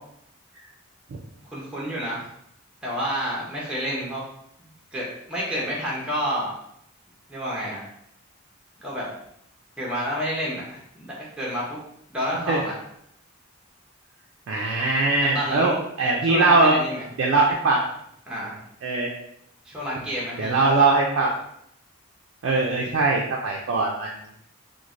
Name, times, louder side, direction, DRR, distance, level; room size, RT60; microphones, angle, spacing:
voice 1, 1.4-2.3 2.8-4.2 4.9-6.5 7.3-7.8 8.8-9.1 9.8-11.8 12.1-12.7 15.2-15.8 16.2-17.0 18.3-18.6 19.6-20.6, equal, 5° right, -5 dB, 0.5 m, -29 dB
voice 2, 14.5-16.8 17.2-17.8 18.8-19.1 20.4-21.3 22.4-24.1, right 3 dB, 60° right, -2 dB, 0.3 m, -21 dB
3.1 x 2.1 x 2.4 m, 0.73 s
head